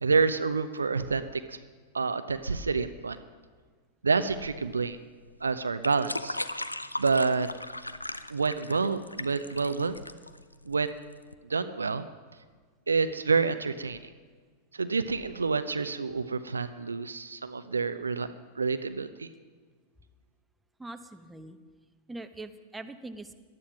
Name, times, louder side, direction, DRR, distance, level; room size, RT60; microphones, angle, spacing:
voice 1, 0.0-1.6 1.9-3.2 4.0-5.0 5.4-6.4 7.0-7.5 8.3-10.0 10.7-11.1 11.5-12.1 12.9-14.0 14.7-18.3 18.6-19.3, right 4 dB, 75° right, 11 dB, 0.7 m, -28 dB
sound 1, 4.3-11.3, left 1 dB, 85° left, 0.6 m, -38 dB
voice 2, 20.8-21.6 22.1-23.3, right 2 dB, 5° right, 7 dB, 1.1 m, -42 dB
18.5 x 12.5 x 6.0 m, 1.5 s
figure-of-eight pair, 90°, 0 cm